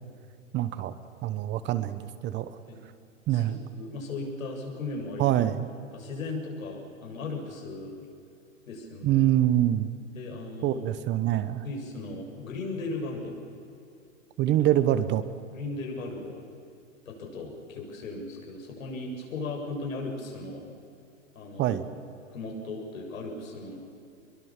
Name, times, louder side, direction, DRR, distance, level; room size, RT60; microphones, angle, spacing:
voice 1, 0.5-0.9 1.2-2.5 3.3-3.6 5.2-5.7 9.0-9.9 10.6-11.6 14.4-15.2 21.6-21.9, right 12 dB, 25° right, 12 dB, 1.0 m, -25 dB
voice 2, 3.3-5.4 5.9-7.9 8.7-9.3 10.2-11.1 11.6-13.4 15.5-16.5 17.1-20.6 21.3-21.8 22.3-23.8, left 3 dB, 80° left, 0 dB, 7.6 m, -37 dB
24.0 x 22.5 x 7.5 m, 2.6 s
hypercardioid pair, 130°, 40 cm